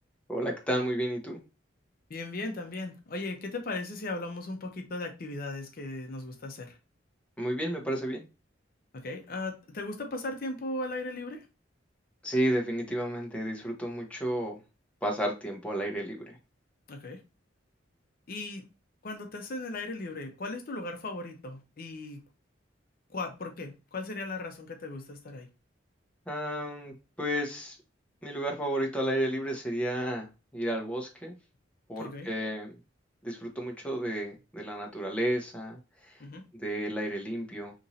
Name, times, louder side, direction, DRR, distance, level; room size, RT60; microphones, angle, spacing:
voice 1, 0.3-1.4 7.4-8.2 12.2-14.6 15.0-16.4 26.3-27.8 28.2-30.3 30.5-31.3 31.9-32.7 33.2-36.2 36.6-37.7, right 1 dB, 5° left, 0 dB, 0.7 m, -32 dB
voice 2, 2.1-6.8 8.9-11.5 16.9-17.2 18.3-18.6 19.0-22.2 23.1-25.5 32.0-32.3 36.2-36.4, left 2 dB, 50° left, 4 dB, 0.6 m, -37 dB
3.0 x 2.6 x 3.9 m, 0.28 s
head